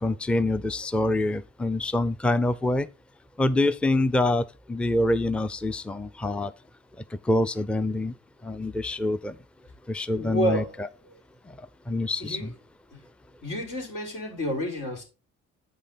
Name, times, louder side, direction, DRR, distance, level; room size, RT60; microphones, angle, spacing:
voice 1, 0.0-2.9 3.4-6.5 7.3-8.1 8.4-9.3 9.9-10.6 11.9-12.5, left 2 dB, 5° left, 0.5 m, -25 dB
voice 2, 10.2-10.7 11.1-11.2 12.2-12.5 12.9-13.0 13.4-15.0, equal, 80° left, 4.5 m, -30 dB
8.3 x 5.7 x 4.0 m
cardioid pair, 90°, 30 cm